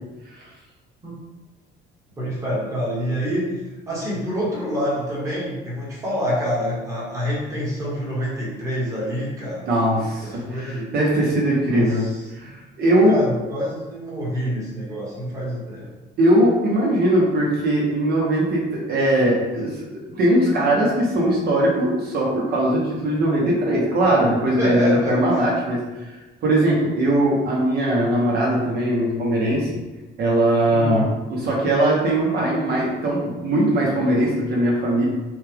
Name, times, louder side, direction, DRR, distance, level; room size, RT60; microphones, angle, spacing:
voice 1, 2.2-3.5 3.9-9.6 9.9-10.9 11.7-12.2 13.1-15.9 24.6-25.4 30.7-31.0, equal, 15° right, -6 dB, 1.3 m, -27 dB
voice 2, 9.7-12.1 12.3-13.1 16.2-19.8 20.1-26.2 26.4-29.7 30.2-35.0, right 1 dB, 50° right, -4 dB, 1.1 m, -20 dB
6.3 x 2.4 x 3.5 m, 1.1 s
cardioid pair, 170°, 21 cm